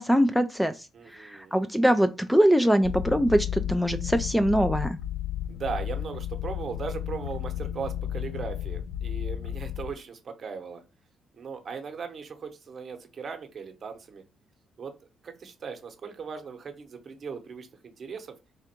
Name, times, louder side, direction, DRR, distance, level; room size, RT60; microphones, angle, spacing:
voice 1, 0.0-5.0, equal, ahead, 10 dB, 0.3 m, -23 dB
voice 2, 0.9-1.6 5.5-10.8 11.3-14.2 14.8-14.9 15.2-18.3, right 6 dB, 50° right, 6 dB, 0.9 m, -38 dB
sound 1, 2.8-9.9, left 10 dB, 75° left, 0.4 m, -33 dB
3.4 x 2.5 x 4.3 m, 0.29 s
cardioid pair, 90°, 0 cm